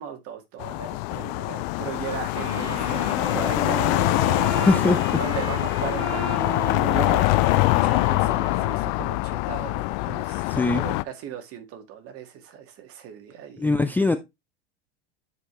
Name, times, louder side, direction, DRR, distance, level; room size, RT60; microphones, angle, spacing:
voice 1, 0.0-3.1 3.3-7.2 7.8-13.7, right 8 dB, 50° right, 1.9 m, -37 dB
sound 1, 0.6-11.0, left 23 dB, 55° left, 0.5 m, -24 dB
Wind instrument woodwind instrument, 2.3-9.2, right 6 dB, 90° right, 1.4 m, -35 dB
voice 2, 4.7-5.0 10.6-10.8 13.6-14.2, left 2 dB, 5° left, 0.5 m, -20 dB
8.7 x 4.9 x 3.1 m
hypercardioid pair, 100°, 31 cm